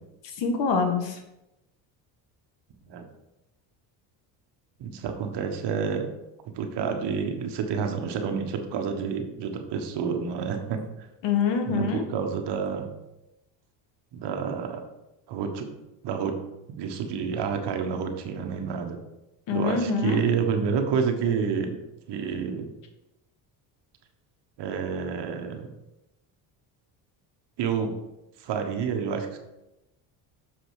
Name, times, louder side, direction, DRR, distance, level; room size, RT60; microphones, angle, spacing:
voice 1, 0.4-1.2 11.2-12.0 19.5-20.2, left 5 dB, 65° left, 5 dB, 1.6 m, -25 dB
voice 2, 4.8-6.1 6.5-10.8 11.6-12.9 14.1-14.8 15.3-15.7 16.0-16.3 16.8-19.0 19.5-21.8 22.1-22.7 24.6-25.7 27.6-27.9 28.4-29.4, right 6 dB, 60° right, 5 dB, 1.4 m, -29 dB
7.0 x 5.1 x 4.8 m, 0.94 s
supercardioid pair, 90°, 46 cm